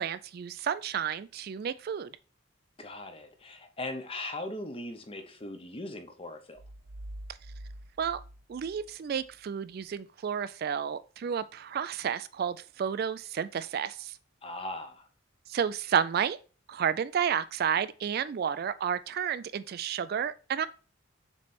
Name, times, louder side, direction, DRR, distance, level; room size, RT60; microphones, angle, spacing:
voice 1, 0.0-2.1 8.0-8.2 8.5-14.2 15.5-16.4 16.7-20.7, right 8 dB, 50° right, 0.3 m, -31 dB
voice 2, 2.8-6.6 14.4-15.1, left 2 dB, 25° left, 0.8 m, -39 dB
sound 1, 6.6-9.4, right 1 dB, 80° right, 1.2 m, -46 dB
7.2 x 3.2 x 4.2 m
head